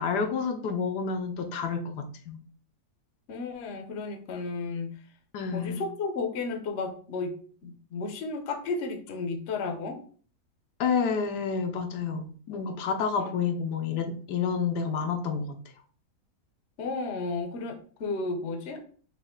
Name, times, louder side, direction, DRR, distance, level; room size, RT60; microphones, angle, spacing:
voice 1, 0.0-2.4 5.3-5.8 10.8-15.6, left 5 dB, 85° left, 6 dB, 1.3 m, -29 dB
voice 2, 3.3-4.9 5.5-7.3 7.6-10.0 13.2-13.3 16.8-18.9, left 3 dB, 55° left, 5 dB, 0.9 m, -33 dB
5.1 x 2.5 x 3.7 m, 0.42 s
omnidirectional pair, 1.7 m